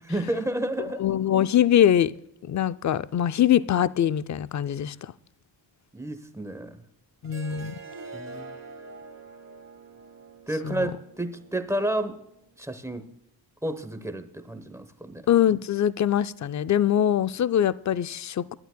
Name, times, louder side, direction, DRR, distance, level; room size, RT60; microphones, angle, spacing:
voice 1, 0.1-1.0 5.9-6.8 8.1-8.5 10.5-12.2 12.6-13.1 13.6-15.3, right 1 dB, 5° right, 0.9 m, -31 dB
voice 2, 1.0-2.1 2.5-5.1 7.2-7.8 10.6-10.9 15.3-18.5, left 10 dB, 40° left, 0.4 m, -23 dB
Harp, 7.2-12.4, right 4 dB, 35° right, 1.2 m, -45 dB
25.5 x 12.0 x 2.2 m
wide cardioid pair, 170°, 45 cm